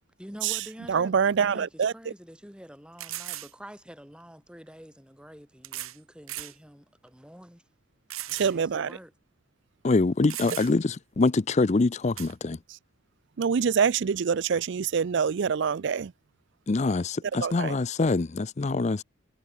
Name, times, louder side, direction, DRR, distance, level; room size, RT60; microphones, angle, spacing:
voice 1, 0.2-7.6 8.3-9.1, equal, 5° right, 7.3 m, -47 dB
voice 2, 0.9-1.9 8.3-8.9 13.4-16.1 17.4-17.7, right 6 dB, 55° right, 0.4 m, -25 dB
sound 1, 1.2-1.3 1.8-1.9 3.0-3.5 4.7-4.8 5.6-6.0 6.3-6.6 7.1-7.2 8.1-8.6 8.9-9.0 9.9-10.0 10.3-10.9 12.2-12.3, right 14 dB, 90° right, 2.0 m, -37 dB
voice 3, 9.8-12.6 16.7-19.0, left 3 dB, 35° left, 0.5 m, -25 dB
head